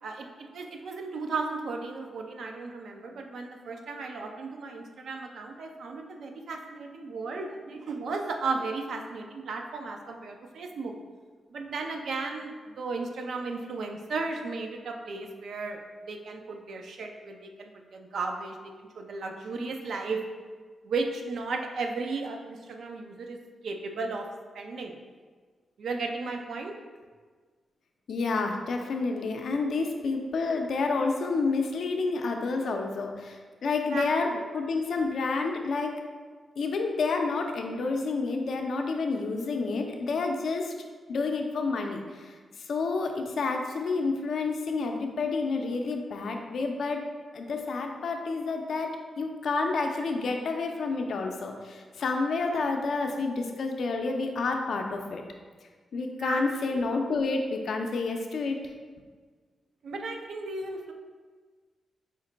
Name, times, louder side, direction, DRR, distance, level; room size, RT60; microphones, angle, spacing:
voice 1, 0.0-10.9 11.5-20.2 20.8-23.4 23.6-24.3 24.5-25.0 25.8-26.8 33.8-34.4 56.1-56.8 59.8-60.9, right 3 dB, 75° right, 3 dB, 0.4 m, -35 dB
voice 2, 28.1-34.3 34.5-36.0 36.6-40.7 41.1-47.1 47.3-55.2 55.9-58.6, left 3 dB, 70° left, 3 dB, 0.4 m, -29 dB
5.0 x 2.1 x 3.8 m, 1.5 s
cardioid pair, 70°, 0 cm